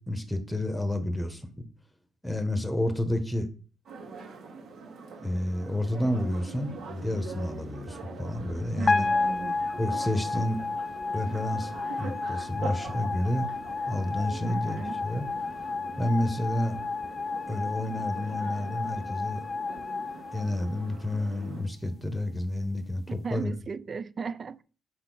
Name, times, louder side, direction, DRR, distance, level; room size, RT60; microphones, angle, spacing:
voice 1, 0.0-1.5 2.2-3.5 5.1-6.7 7.0-9.1 9.8-10.6 11.1-13.5 13.9-15.3 16.0-16.8 17.5-19.5 20.3-23.5, left 1 dB, 5° left, 1.2 m, -30 dB
sound 1, 3.8-21.6, right 4 dB, 80° right, 2.7 m, -44 dB
sound 2, 6.3-18.3, equal, 60° right, 2.2 m, -50 dB
voice 2, 8.8-9.6 14.4-15.0 23.2-24.6, right 5 dB, 40° right, 0.4 m, -36 dB
sound 3, 8.9-21.1, left 3 dB, 30° left, 0.5 m, -32 dB
6.4 x 4.3 x 4.0 m
cardioid pair, 90°, 0 cm